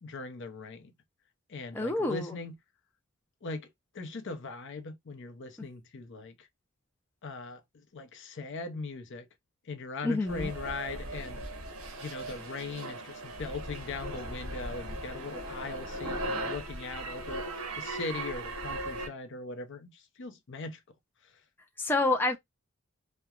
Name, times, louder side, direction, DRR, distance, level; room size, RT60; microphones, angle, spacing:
voice 1, 0.0-0.9 1.5-2.5 3.4-3.7 3.9-6.5 7.2-7.6 7.9-9.3 9.7-11.4 12.0-17.5 17.8-20.8, left 3 dB, 60° left, 0.6 m, -40 dB
voice 2, 1.7-2.4 10.0-10.5 21.8-22.4, left 2 dB, 10° left, 0.3 m, -28 dB
sound 1, 10.3-19.1, right 1 dB, 70° right, 0.8 m, -38 dB
2.9 x 2.1 x 2.3 m
head